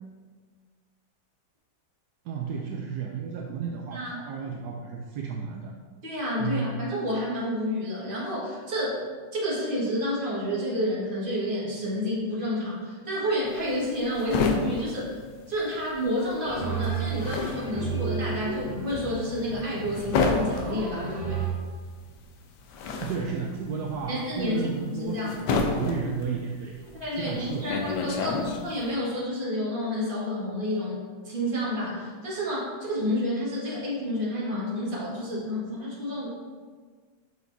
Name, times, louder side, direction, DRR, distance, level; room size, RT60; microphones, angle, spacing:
voice 1, 2.2-5.7 6.4-6.8 23.0-27.7 28.2-28.4, right 6 dB, 75° right, 1 dB, 0.9 m, -33 dB
voice 2, 6.0-9.1 9.3-15.2 15.5-21.4 24.1-25.3 26.9-31.0 31.2-36.3, left 1 dB, 25° right, -7 dB, 1.9 m, -29 dB
sound 1, 13.5-16.0 16.3-28.9, left 4 dB, 70° left, 1.2 m, -30 dB
sound 2, 16.4-21.5, right 6 dB, 55° right, 1.9 m, -33 dB
7.1 x 6.0 x 2.7 m, 1.5 s
omnidirectional pair, 2.1 m